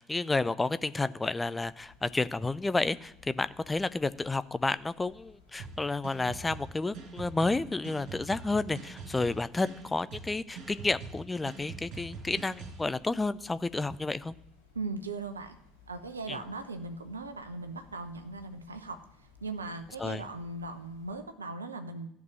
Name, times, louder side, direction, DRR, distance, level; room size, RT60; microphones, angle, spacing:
voice 1, 0.0-14.3 16.3-16.4 20.0-20.2, left 3 dB, 15° left, 15 dB, 0.5 m, -31 dB
sound 1, 1.6-21.2, left 5 dB, 85° left, 2.1 m, -60 dB
sound 2, 5.6-12.8, right 4 dB, 50° right, 5.9 m, -44 dB
voice 2, 14.7-15.6 15.9-19.0 19.4-22.1, right 3 dB, 80° right, 9 dB, 0.9 m, -38 dB
13.5 x 6.1 x 8.8 m, 0.77 s
figure-of-eight pair, 60°, 0 cm